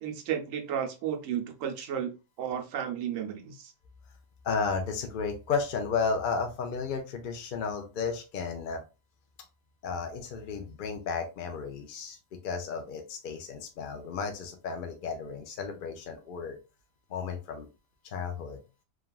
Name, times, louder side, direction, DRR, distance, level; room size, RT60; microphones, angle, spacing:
voice 1, 0.0-2.1 2.4-3.7, right 9 dB, 80° right, 3 dB, 1.0 m, -33 dB
voice 2, 4.4-8.8 9.8-12.2 12.4-16.6 17.1-17.7 18.0-18.6, left 5 dB, 65° left, 4 dB, 0.5 m, -33 dB
3.2 x 2.3 x 2.3 m, 0.30 s
omnidirectional pair, 1.4 m